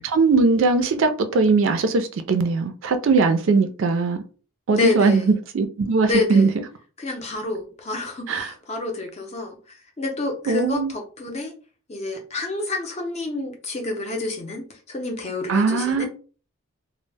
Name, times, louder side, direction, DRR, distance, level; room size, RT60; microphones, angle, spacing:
voice 1, 0.0-4.2 4.7-6.5 8.3-8.5 10.5-10.9 15.5-16.1, right 4 dB, 65° right, 0.3 m, -20 dB
voice 2, 4.7-5.2 6.1-6.4 7.0-9.6 10.0-11.5 11.9-16.1, left 2 dB, 30° left, 0.5 m, -28 dB
2.0 x 2.0 x 3.2 m
head